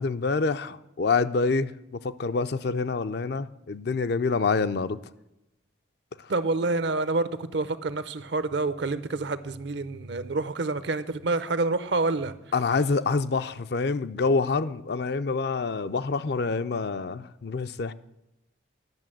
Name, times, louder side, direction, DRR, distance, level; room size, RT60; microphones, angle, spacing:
voice 1, 0.0-5.0 12.5-17.9, left 4 dB, 55° left, 0.5 m, -26 dB
voice 2, 6.3-12.3, right 3 dB, 65° right, 0.6 m, -28 dB
10.5 x 6.6 x 7.6 m
head